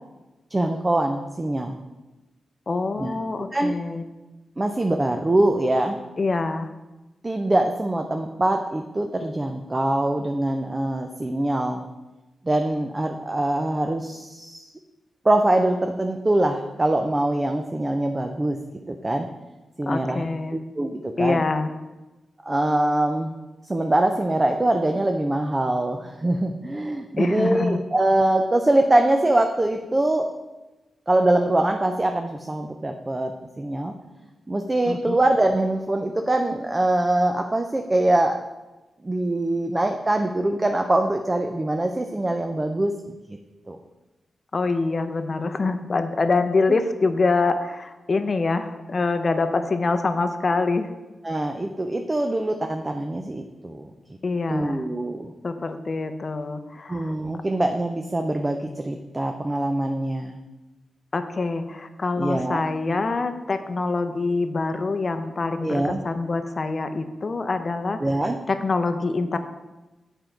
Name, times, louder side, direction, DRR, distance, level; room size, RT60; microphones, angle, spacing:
voice 1, 0.5-1.8 3.0-3.1 3.5-3.7 4.6-6.0 7.2-11.9 12.4-14.6 15.2-18.6 18.9-19.3 19.8-21.4 22.4-23.3 23.7-30.3 31.1-33.9 34.5-38.4 39.0-43.2 43.7-43.8 46.7-46.8 51.2-53.9 54.5-55.3 56.9-60.4 62.2-62.6 65.6-66.0 68.0-68.4, right 1 dB, 20° right, 5 dB, 0.5 m, -23 dB
voice 2, 2.7-4.0 6.2-6.7 19.9-20.6 21.2-21.7 27.2-27.8 34.9-35.2 44.5-50.9 54.2-54.8 55.4-57.1 61.1-68.0 68.5-69.4, left 3 dB, 40° left, 8 dB, 0.6 m, -25 dB
7.8 x 4.5 x 5.0 m, 1.1 s
wide cardioid pair, 105°, 0 cm